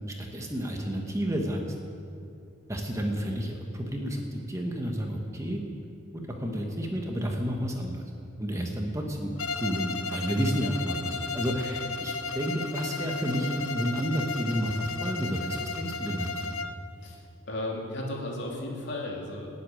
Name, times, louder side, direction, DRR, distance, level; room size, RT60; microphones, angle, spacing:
voice 1, 0.2-1.6 2.7-5.6 6.1-8.0 8.4-16.5, equal, 15° right, 1 dB, 1.4 m, -31 dB
Bowed string instrument, 9.4-16.9, left 4 dB, 90° left, 0.7 m, -34 dB
voice 2, 17.0-19.5, left 1 dB, 60° left, -1 dB, 3.0 m, -35 dB
19.0 x 8.4 x 9.2 m, 2.6 s
head